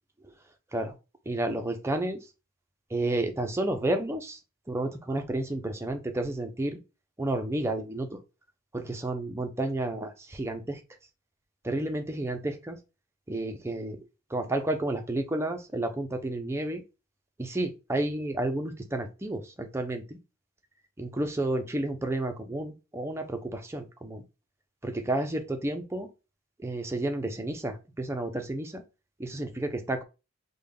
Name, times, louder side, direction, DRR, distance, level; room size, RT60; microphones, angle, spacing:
voice 1, 1.3-2.2 2.9-4.4 4.7-6.8 7.2-8.2 8.7-10.8 11.6-12.8 13.3-14.0 14.3-16.8 17.4-20.2 21.0-24.2 24.8-26.1 26.6-28.8 29.2-30.0, right 1 dB, 10° right, 5 dB, 0.4 m, -31 dB
3.4 x 2.2 x 3.4 m, 0.28 s
head